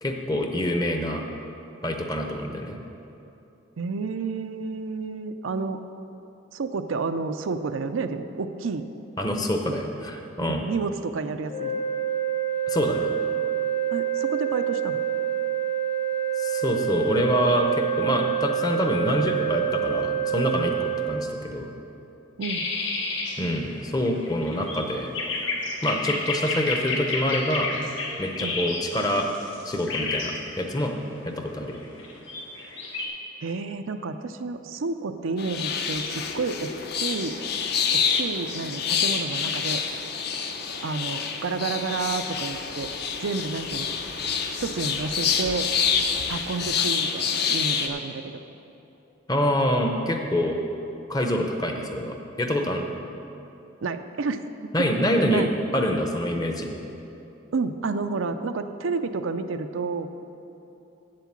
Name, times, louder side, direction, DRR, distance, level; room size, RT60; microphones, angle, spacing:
voice 1, 0.0-1.2 1.8-2.8 9.2-10.6 12.7-13.1 16.4-21.7 23.4-25.1 25.8-27.7 28.2-29.3 29.6-30.9 31.4-31.8 49.3-50.6 51.1-52.9 54.7-55.5 55.7-56.7, equal, 20° left, 3 dB, 0.7 m, -26 dB
voice 2, 3.8-5.8 6.5-8.9 9.7-9.8 10.4-11.8 13.9-15.0 22.4-22.6 28.4-28.6 33.4-37.4 37.9-39.8 40.8-42.9 43.2-44.0 44.6-45.7 46.3-48.3 53.8-54.5 54.8-54.9 55.2-55.5 57.5-60.1, right 4 dB, 80° right, 8 dB, 0.5 m, -30 dB
sound 1, 11.5-21.2, right 9 dB, 35° left, 1.1 m, -27 dB
sound 2, 22.4-33.1, left 3 dB, 75° left, 1.6 m, -31 dB
sound 3, 35.4-47.9, left 6 dB, 50° left, 0.7 m, -27 dB
8.3 x 7.6 x 7.2 m, 2.9 s
head